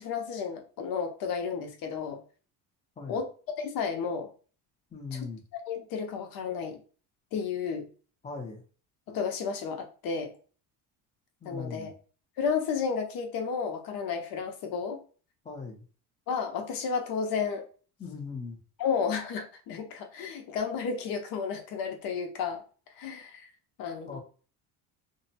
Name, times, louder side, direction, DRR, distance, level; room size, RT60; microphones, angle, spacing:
voice 1, 0.0-2.2 3.1-4.3 5.1-6.8 7.3-7.9 9.1-10.3 11.4-11.9 12.4-15.0 16.3-17.7 18.8-22.6 22.9-23.5 23.8-24.2, left 6 dB, 60° left, 5 dB, 0.7 m, -32 dB
voice 2, 4.9-5.4 8.2-8.6 11.4-11.9 15.4-15.8 18.0-18.6 24.1-24.2, left 4 dB, 20° left, 1 dB, 0.6 m, -39 dB
2.6 x 2.1 x 2.7 m, 0.38 s
cardioid pair, 155°, 40 cm